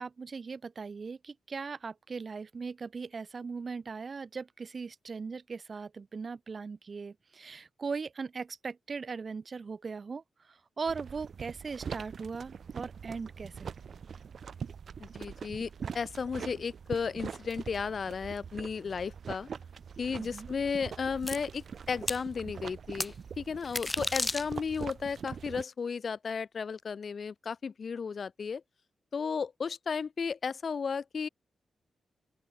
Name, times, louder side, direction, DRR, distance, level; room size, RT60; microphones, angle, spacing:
voice 1, 0.0-10.2 10.8-13.7 20.2-20.5, right 5 dB, 40° right, 1.9 m, -39 dB
sound 1, 10.9-25.6, right 6 dB, 55° right, 2.7 m, -43 dB
voice 2, 15.0-19.5 20.0-28.6 29.1-31.3, left 5 dB, 50° left, 1.1 m, -34 dB
sound 2, 21.3-21.4 22.1-22.2 23.0-23.1 23.6-24.8, left 2 dB, 15° left, 0.7 m, -32 dB
open air
wide cardioid pair, 125°, 0 cm